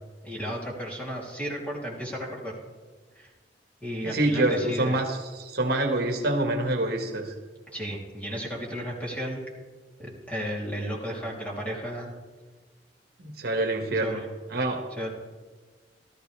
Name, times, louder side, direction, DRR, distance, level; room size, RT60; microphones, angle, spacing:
voice 1, 0.2-2.6 3.1-3.3 3.8-4.9 7.7-9.4 10.0-12.1 14.0-14.2 14.9-15.1, equal, 10° left, -5 dB, 3.1 m, -34 dB
voice 2, 4.0-7.3 13.2-14.2 14.5-14.8, right 2 dB, 65° right, 3 dB, 1.4 m, -26 dB
16.0 x 13.5 x 3.4 m, 1.3 s
head